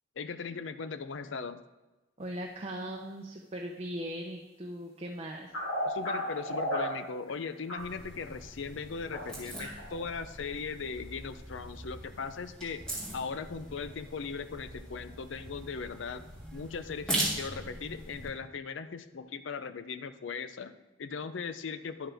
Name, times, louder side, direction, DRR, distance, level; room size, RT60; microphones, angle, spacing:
voice 1, 0.2-1.6 5.8-12.9 13.1-22.1, left 5 dB, 70° left, 11 dB, 0.5 m, -39 dB
voice 2, 2.2-5.5, equal, 30° right, 0 dB, 0.6 m, -39 dB
sound 1, 3.8-3.9 5.3-6.8 7.3-7.8 8.1-8.4 9.1-9.2 9.6-10.0, equal, 90° left, 3.6 m, -33 dB
sound 2, 7.8-18.3, right 1 dB, 5° left, 1.9 m, -40 dB
10.5 x 7.5 x 3.5 m, 1.1 s
head